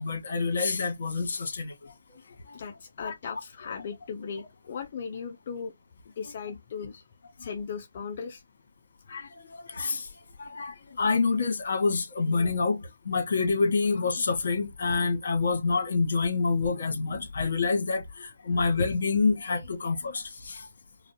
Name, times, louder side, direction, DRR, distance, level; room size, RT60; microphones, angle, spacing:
voice 1, 0.0-2.6 3.0-3.1 7.4-7.5 9.1-10.1 10.4-20.7, left 4 dB, 60° left, 1.5 m, -27 dB
voice 2, 2.5-5.7 6.2-7.0 7.4-8.4, left 6 dB, 35° left, 0.4 m, -37 dB
4.8 x 2.2 x 2.8 m
hypercardioid pair, 170°, 0 cm